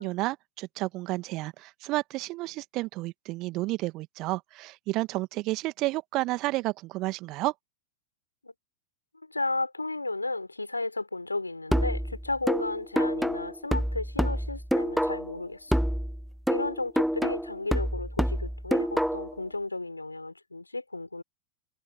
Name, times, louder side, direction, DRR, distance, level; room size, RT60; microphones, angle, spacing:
voice 1, 0.0-7.5, right 20 dB, 40° right, 1.8 m, -31 dB
voice 2, 9.2-15.8 16.5-21.2, left 2 dB, 85° left, 3.9 m, -34 dB
sound 1, 11.7-15.4 15.7-19.4, equal, ahead, 1.8 m, -27 dB
figure-of-eight pair, 90°, 0 cm